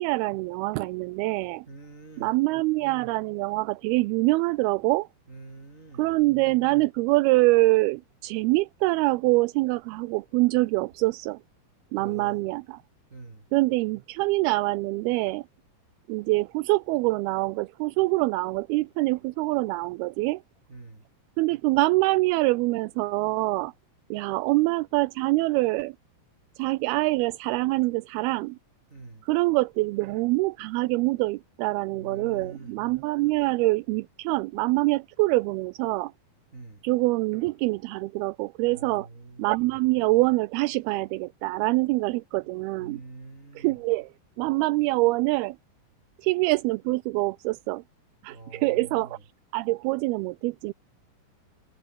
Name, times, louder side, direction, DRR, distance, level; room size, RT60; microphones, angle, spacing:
voice 1, 0.0-1.6 2.2-5.1 6.0-11.4 11.9-12.8 13.5-15.4 16.1-20.4 21.4-23.7 24.1-26.0 26.6-28.6 29.2-36.1 36.8-39.1 39.4-43.0 43.6-44.1 44.4-45.6 46.2-47.8 48.2-49.2 49.5-50.7, right 22 dB, 85° right, 2.5 m, -25 dB
voice 2, 1.7-2.4 5.3-6.1 11.9-12.5 13.1-13.4 20.7-21.0 28.9-29.2 31.9-32.8 36.5-36.8 38.7-39.5 42.8-43.7 48.3-49.1, right 3 dB, 20° right, 2.9 m, -44 dB
omnidirectional pair, 4.6 m